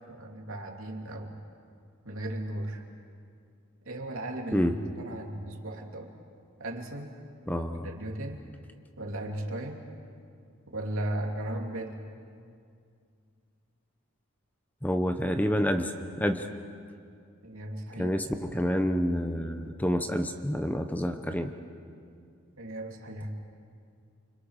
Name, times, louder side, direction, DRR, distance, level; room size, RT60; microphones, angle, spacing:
voice 1, 0.1-1.4 2.0-2.8 3.8-6.1 6.6-7.1 7.8-8.4 9.0-9.8 10.7-12.0 17.4-18.2 22.6-23.3, right 1 dB, 75° right, 0 dB, 2.9 m, -36 dB
voice 2, 7.5-7.9 14.8-15.9 16.2-16.5 18.0-21.5, equal, 5° left, 6 dB, 0.9 m, -28 dB
29.5 x 25.5 x 6.5 m, 2.3 s
head